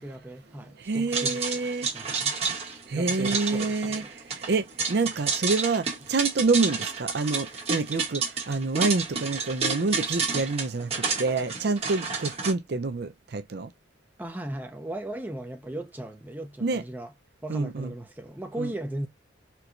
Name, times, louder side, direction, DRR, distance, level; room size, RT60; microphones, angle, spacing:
voice 1, 0.0-2.4 2.9-4.1 14.2-17.1 17.4-19.1, right 1 dB, 10° right, 0.5 m, -37 dB
voice 2, 0.8-1.9 2.4-2.6 2.9-13.7 16.6-16.8 17.5-17.9 18.6-18.7, right 3 dB, 55° right, 0.5 m, -27 dB
sound 1, 1.1-12.5, right 4 dB, 30° right, 1.0 m, -30 dB
4.5 x 2.2 x 2.5 m
head